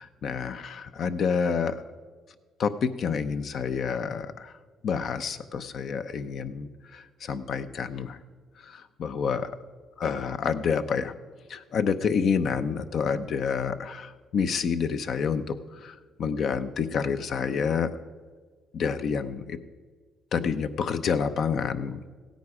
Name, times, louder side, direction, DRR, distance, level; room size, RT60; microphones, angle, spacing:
voice 1, 0.0-1.8 2.6-4.5 4.8-8.2 8.6-9.6 10.0-11.1 11.5-17.9 18.7-19.6 20.3-22.0, left 6 dB, 60° left, 11 dB, 0.7 m, -28 dB
16.0 x 9.3 x 4.9 m, 1.5 s
cardioid pair, 100°, 0 cm